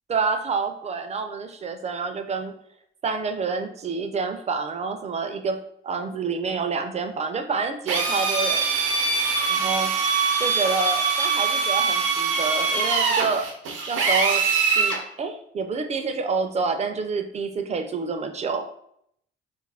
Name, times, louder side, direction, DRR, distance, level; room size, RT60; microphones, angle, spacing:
voice 1, 0.1-2.6 3.0-8.6 9.5-9.9 10.4-13.5 13.9-14.4 14.8-18.7, right 4 dB, 35° right, 7 dB, 0.4 m, -28 dB
Drill, 7.9-15.0, right 5 dB, 80° right, 0.5 m, -23 dB
2.4 x 2.1 x 3.3 m, 0.70 s
cardioid pair, 90°, 20 cm